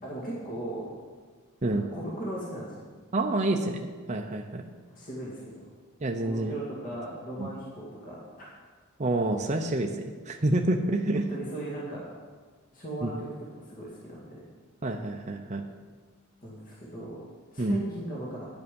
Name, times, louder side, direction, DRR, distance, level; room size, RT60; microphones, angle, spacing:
voice 1, 0.0-0.9 1.7-2.8 4.9-5.3 6.2-8.5 11.1-12.1 12.7-13.3 13.7-14.4 16.4-17.2 17.5-18.5, right 1 dB, 40° left, -5 dB, 2.1 m, -38 dB
voice 2, 3.1-4.6 6.0-6.5 7.4-7.5 9.0-11.3 13.0-13.1 14.8-15.6 17.6-17.8, right 2 dB, 35° right, 3 dB, 0.7 m, -28 dB
9.9 x 9.5 x 5.3 m, 1.5 s
head